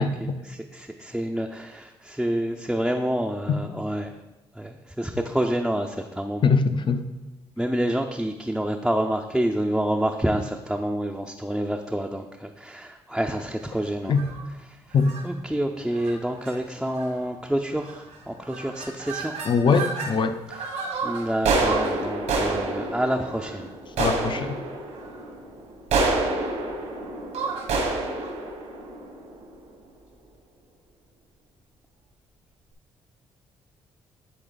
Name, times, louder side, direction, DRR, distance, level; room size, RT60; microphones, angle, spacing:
voice 1, 0.0-4.1 4.5-6.6 7.6-14.1 14.5-14.9 15.2-19.3 20.5-20.7 21.0-23.7, right 1 dB, 5° right, 1 dB, 0.5 m, -28 dB
voice 2, 6.4-7.0 14.1-14.2 14.9-15.1 19.5-20.4 24.0-24.5, left 5 dB, 45° left, 10 dB, 0.6 m, -21 dB
sound 1, 14.1-14.4 15.0-15.2 15.9-16.1 16.4-16.5 16.9-17.3 17.8-18.2 18.4-20.1 20.5-29.7, right 3 dB, 80° right, 1.5 m, -28 dB
9.9 x 4.0 x 3.9 m, 1.0 s
cardioid pair, 75°, 12 cm